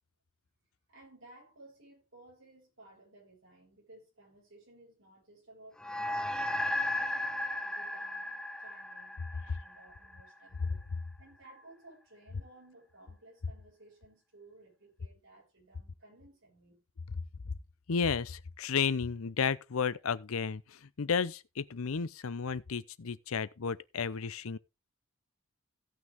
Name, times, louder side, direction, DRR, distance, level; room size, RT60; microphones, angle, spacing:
voice 1, 0.9-6.6 6.9-10.9 11.2-16.8, right 2 dB, 60° right, 7.4 m, -57 dB
sound 1, 5.8-10.5, left 1 dB, 5° left, 0.4 m, -35 dB
voice 2, 17.9-24.6, left 6 dB, 75° left, 0.6 m, -33 dB
16.5 x 6.2 x 3.5 m
head